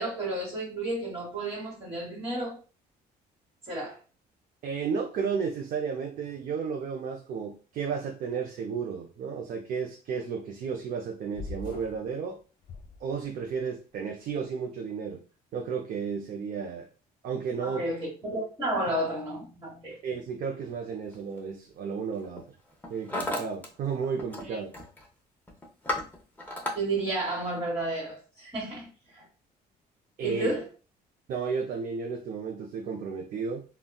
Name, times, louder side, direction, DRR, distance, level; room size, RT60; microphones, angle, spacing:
voice 1, 0.0-2.5 3.7-4.0 17.6-20.0 24.4-24.7 26.7-28.9 29.1-29.2 30.2-30.6, right 2 dB, 25° right, 1.3 m, -32 dB
voice 2, 4.6-12.4 13.0-15.2 15.5-16.9 17.2-17.9 20.0-22.6 22.9-24.7 30.2-30.5 31.3-33.6, right 6 dB, 55° right, 0.5 m, -33 dB
sound 1, 11.3-12.1 12.6-13.5, left 3 dB, 60° left, 0.7 m, -42 dB
Hammer, 21.1-21.4 22.1-22.4 22.7-23.7 23.9-24.5 24.7-25.1 25.5-26.8, left 1 dB, 10° left, 0.7 m, -34 dB
3.6 x 2.2 x 2.2 m
cardioid pair, 110°, 17 cm